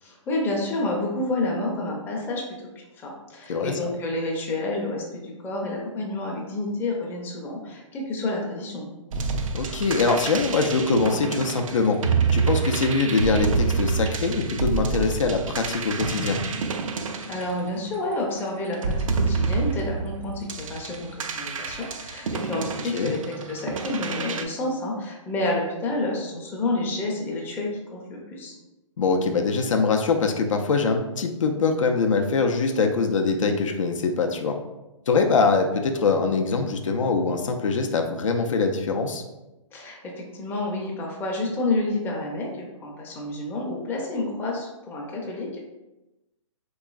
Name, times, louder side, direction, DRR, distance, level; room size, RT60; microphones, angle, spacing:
voice 1, 0.0-2.4 3.0-8.9 17.3-28.5 39.7-45.6, left 2 dB, 10° left, -2 dB, 0.5 m, -29 dB
sound 1, 9.1-18.1 18.7-24.4, right 4 dB, 75° right, 0.4 m, -28 dB
voice 2, 9.5-12.0 12.3-16.4 22.9-23.1 29.0-34.6 35.1-39.2, left 4 dB, 70° left, 4 dB, 0.5 m, -23 dB
3.6 x 3.0 x 2.3 m, 1.0 s
hypercardioid pair, 130°, 17 cm